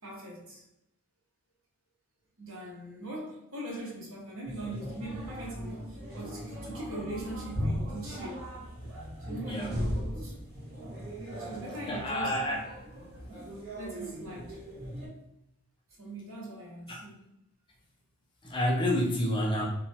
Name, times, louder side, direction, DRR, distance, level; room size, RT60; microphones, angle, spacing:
voice 1, 0.0-0.6 2.4-8.4 9.3-10.3 11.4-12.4 13.1-13.2 13.8-14.6 16.0-17.2, right 1 dB, 65° right, -4 dB, 0.9 m, -41 dB
sound 1, 4.4-15.1, equal, 25° right, 1.3 m, -38 dB
voice 2, 11.9-12.6 16.9-17.0 18.4-19.7, left 1 dB, 20° left, -2 dB, 0.4 m, -29 dB
2.8 x 2.2 x 2.7 m, 0.82 s
head